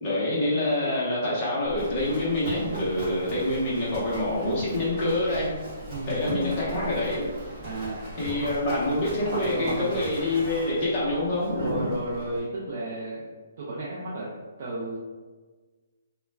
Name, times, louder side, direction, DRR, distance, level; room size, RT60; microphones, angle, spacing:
voice 1, 0.0-5.5 6.1-7.3 8.2-11.9, left 1 dB, 25° left, -8 dB, 0.8 m, -26 dB
Livestock farm animals working animals, 1.7-12.4, right 1 dB, 15° right, 0.8 m, -39 dB
voice 2, 5.8-6.6 7.6-8.5 9.4-10.0 11.5-13.2 13.6-14.3 14.6-15.0, right 1 dB, 40° right, -6 dB, 0.4 m, -33 dB
2.3 x 2.2 x 3.2 m, 1.4 s
hypercardioid pair, 175°, 0 cm